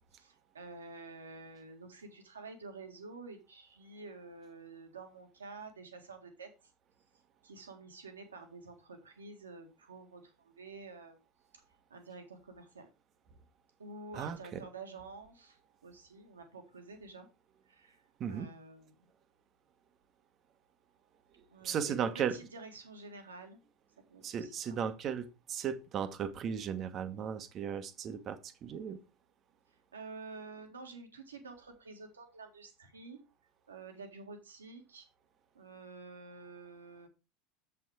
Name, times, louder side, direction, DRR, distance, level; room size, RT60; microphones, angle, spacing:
voice 1, 0.1-6.5 7.4-11.2 11.5-11.6 11.9-12.9 13.8-17.3 17.7-19.0 21.5-23.6 24.1-24.8 29.9-33.2 33.7-35.1 35.5-37.1, right 3 dB, 85° right, 5 dB, 1.9 m, -49 dB
voice 2, 14.1-14.6 18.2-18.5 21.4-22.4 24.2-29.0, right 8 dB, 40° right, 9 dB, 1.2 m, -36 dB
7.4 x 6.0 x 4.8 m, 0.28 s
figure-of-eight pair, 75°, 0 cm